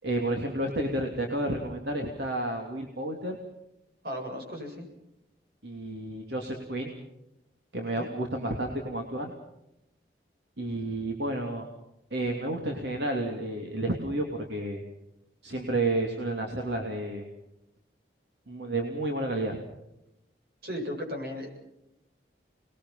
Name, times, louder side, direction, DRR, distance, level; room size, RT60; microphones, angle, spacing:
voice 1, 0.0-3.4 5.6-6.9 7.7-9.3 10.6-11.7 12.1-14.8 15.4-17.2 18.5-19.6, right 1 dB, 75° right, 2 dB, 3.0 m, -31 dB
voice 2, 4.0-4.9 7.9-8.1 20.6-21.5, equal, 55° right, 2 dB, 7.8 m, -35 dB
29.5 x 21.0 x 5.8 m, 0.86 s
head